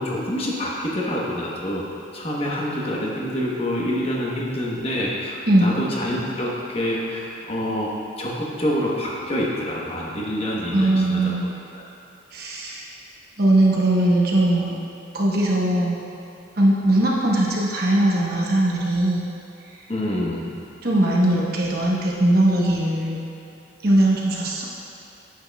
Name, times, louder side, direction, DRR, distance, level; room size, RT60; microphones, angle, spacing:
voice 1, 0.0-1.8 2.1-11.8 19.9-20.5, equal, 30° left, -4 dB, 1.1 m, -27 dB
voice 2, 10.7-11.5 12.3-12.8 13.4-14.7 15.1-16.0 16.6-19.3 20.8-23.2 23.8-24.6, right 1 dB, 55° right, -4 dB, 1.1 m, -20 dB
9.2 x 8.8 x 2.3 m, 2.8 s
head